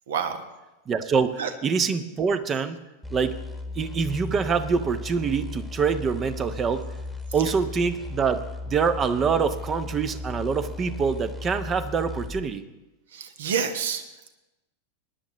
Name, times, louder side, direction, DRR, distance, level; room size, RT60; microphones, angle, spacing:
voice 1, 0.1-0.4 1.4-1.5 7.4-7.5 13.1-14.3, right 7 dB, 60° right, 8 dB, 1.2 m, -29 dB
voice 2, 0.9-2.8 3.1-3.4 3.7-6.9 7.3-12.6, right 5 dB, 25° right, 12 dB, 0.8 m, -25 dB
sound 1, 3.0-12.5, left 3 dB, 5° right, 1.4 m, -36 dB
19.5 x 10.5 x 3.0 m, 1.0 s
figure-of-eight pair, 90°, 0 cm